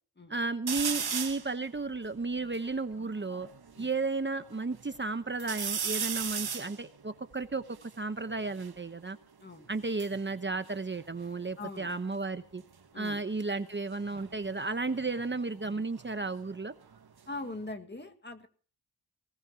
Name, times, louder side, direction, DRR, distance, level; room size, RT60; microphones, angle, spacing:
voice 1, 0.3-3.5 3.8-9.2 9.7-12.6 12.9-16.7, right 3 dB, 30° right, 10 dB, 1.0 m, -33 dB
sound 1, 0.7-1.5 2.1-2.2 2.3-3.9 4.4-5.0 5.4-8.8 9.7-11.6 11.9-12.4 13.9-16.6 16.9-17.7, right 6 dB, 70° right, 1.6 m, -38 dB
voice 2, 11.6-11.9 12.9-13.3 17.3-18.5, left 2 dB, 25° left, 6 dB, 2.0 m, -41 dB
20.5 x 19.0 x 3.0 m, 0.42 s
wide cardioid pair, 120°, 38 cm